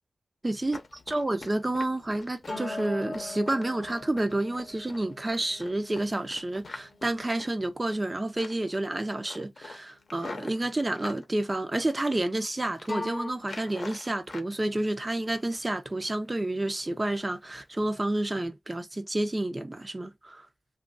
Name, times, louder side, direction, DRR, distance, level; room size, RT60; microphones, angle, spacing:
voice 1, 0.4-0.8 1.1-20.5, right 1 dB, 25° right, 0.6 m, -30 dB
Run, 0.6-8.1 8.4-8.8 9.1-11.2 11.8-12.4 12.6-12.9 13.4-14.5 14.8-15.7 16.0-16.2 16.6-16.9 17.2-17.4 17.8-18.0 18.4-18.5, left 3 dB, 65° left, 0.7 m, -46 dB
sound 1, 2.5-9.4 12.9-13.3, left 2 dB, 20° left, 0.8 m, -41 dB
3.0 x 2.4 x 2.3 m
wide cardioid pair, 100°, 0 cm